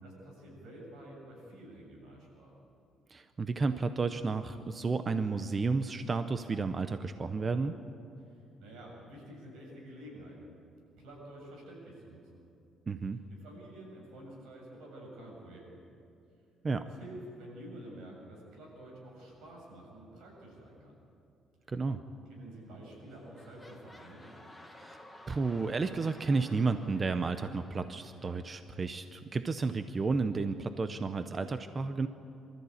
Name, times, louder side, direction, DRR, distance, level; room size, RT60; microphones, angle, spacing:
voice 1, 0.0-2.5 8.3-10.5 11.0-12.4 13.3-15.8 16.8-21.0 22.3-24.4, right 1 dB, 85° right, -2 dB, 7.3 m, -49 dB
voice 2, 3.1-7.8 12.9-13.2 16.6-16.8 21.7-22.0 24.8-25.0 25.3-32.1, right 4 dB, 25° right, 10 dB, 0.6 m, -32 dB
sound 1, 22.5-22.8 23.0-28.9 29.5-29.6, left 1 dB, 5° left, 1.7 m, -55 dB
24.5 x 14.0 x 8.7 m, 2.6 s
cardioid pair, 145°, 0 cm